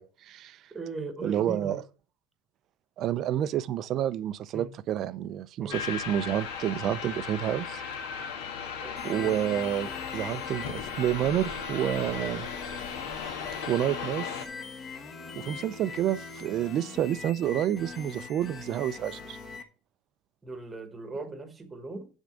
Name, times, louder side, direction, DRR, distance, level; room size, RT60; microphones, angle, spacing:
voice 1, 0.0-0.6 1.2-1.8 3.0-7.8 9.0-12.5 13.1-14.3 15.3-19.4, right 11 dB, 35° right, 0.4 m, -29 dB
voice 2, 0.7-1.8 4.5-4.7 5.6-5.8 8.8-9.3 20.4-22.1, right 3 dB, 10° right, 1.2 m, -39 dB
sound 1, 5.7-14.5, left 6 dB, 75° left, 1.6 m, -36 dB
sound 2, 9.0-19.6, left 4 dB, 25° left, 1.0 m, -42 dB
10.0 x 3.6 x 6.3 m
cardioid pair, 155°, 0 cm